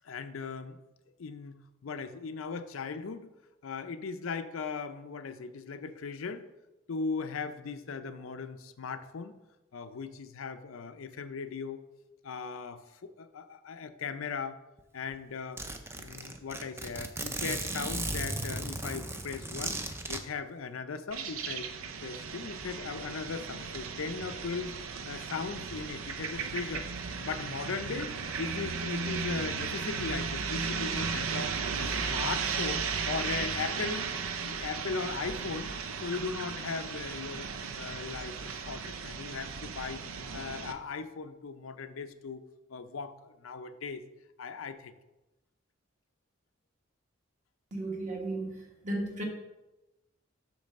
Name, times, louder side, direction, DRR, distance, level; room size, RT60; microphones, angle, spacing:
voice 1, 0.0-0.8 1.2-1.6 1.8-3.3 3.6-6.5 6.9-9.4 9.7-11.8 12.2-14.6 14.9-15.6 16.0-19.8 20.1-21.7 22.0-24.7 25.0-26.9 27.2-28.1 28.4-34.1 34.4-35.7 36.0-37.5 37.8-40.0 40.3-42.4 42.7-44.0 44.4-44.9, left 5 dB, 80° left, 10 dB, 0.5 m, -38 dB
Zipper (clothing), 14.8-14.9 15.1-15.2 15.6-20.2, right 2 dB, 10° right, 0.5 m, -36 dB
sound 1, 21.1-40.7, right 5 dB, 85° right, 0.6 m, -35 dB
voice 2, 47.7-48.6 48.8-49.2, right 2 dB, 35° right, 0 dB, 1.5 m, -34 dB
8.4 x 3.2 x 6.4 m, 1.0 s
head